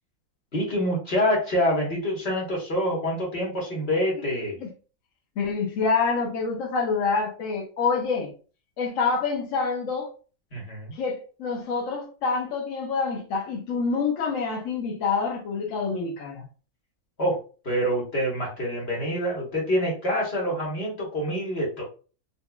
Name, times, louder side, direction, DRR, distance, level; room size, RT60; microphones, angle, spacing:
voice 1, 0.5-4.6 10.5-10.9 17.2-17.4 17.6-21.8, equal, 45° left, 1.5 m, -26 dB
voice 2, 5.4-8.3 8.8-10.1 10.9-16.4, left 4 dB, 65° left, 1.0 m, -27 dB
4.1 x 2.7 x 2.2 m
omnidirectional pair, 1.6 m